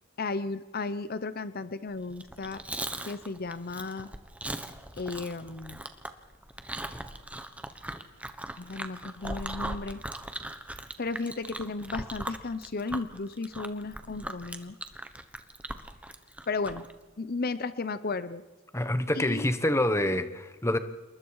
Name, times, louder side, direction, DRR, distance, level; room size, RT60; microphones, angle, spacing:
voice 1, 0.2-2.6 3.0-4.1 5.0-5.8 8.6-10.0 11.0-14.8 16.5-16.8 17.2-18.4 19.2-19.5, left 3 dB, 50° left, 13 dB, 0.7 m, -34 dB
Chewing mastication, 2.1-16.9, right 1 dB, 5° right, 1.2 m, -39 dB
voice 2, 18.7-20.8, left 1 dB, 15° left, 11 dB, 1.1 m, -26 dB
27.5 x 21.5 x 4.8 m, 1.3 s
head